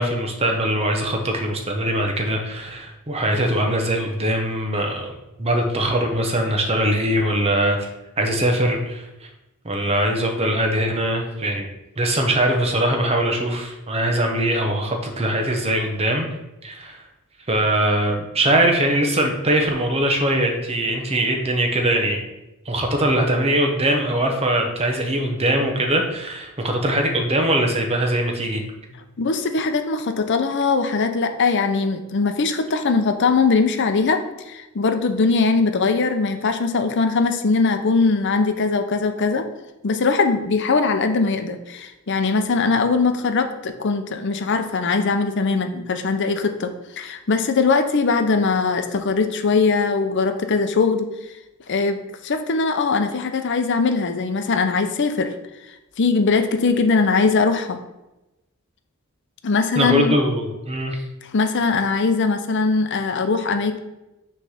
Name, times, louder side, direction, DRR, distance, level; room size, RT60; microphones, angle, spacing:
voice 1, 0.0-5.1 5.4-7.9 8.2-9.3 9.6-11.7 12.0-16.3 16.6-17.0 17.5-22.2 22.7-28.6 59.7-61.0, right 1 dB, 30° right, 3 dB, 0.9 m, -21 dB
voice 2, 29.2-39.5 39.8-51.1 51.7-52.0 52.2-55.3 56.0-57.8 59.4-60.1 61.3-63.8, left 4 dB, 55° left, 7 dB, 0.6 m, -21 dB
6.3 x 3.3 x 5.6 m, 0.97 s
head